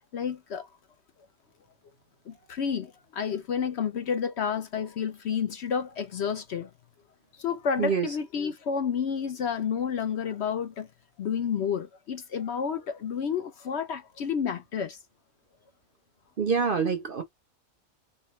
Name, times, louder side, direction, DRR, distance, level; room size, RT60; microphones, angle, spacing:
voice 1, 0.1-0.7 2.3-6.7 7.4-10.9 11.2-15.0, left 7 dB, 60° left, 0.8 m, -30 dB
voice 2, 16.4-17.2, right 6 dB, 50° right, 0.7 m, -26 dB
4.4 x 2.3 x 3.1 m
omnidirectional pair, 1.5 m